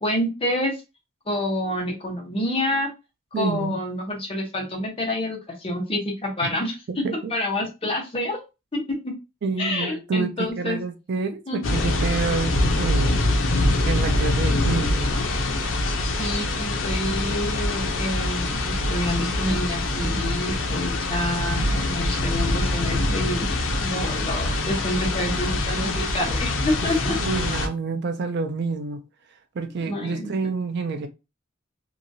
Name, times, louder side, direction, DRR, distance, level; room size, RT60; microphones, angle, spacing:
voice 1, 0.0-0.7 1.3-2.9 3.4-7.0 7.3-8.4 8.7-9.1 9.6-10.8 11.5-11.6 16.2-23.5 23.8-27.2 29.8-30.3, left 1 dB, 30° left, 1.0 m, -28 dB
voice 2, 3.3-3.7 6.9-7.3 9.4-13.1 13.9-15.1 26.8-29.0 29.5-31.1, right 4 dB, 60° right, 0.4 m, -28 dB
sound 1, 11.6-27.7, left 2 dB, 75° left, 0.6 m, -24 dB
2.9 x 2.5 x 2.6 m
head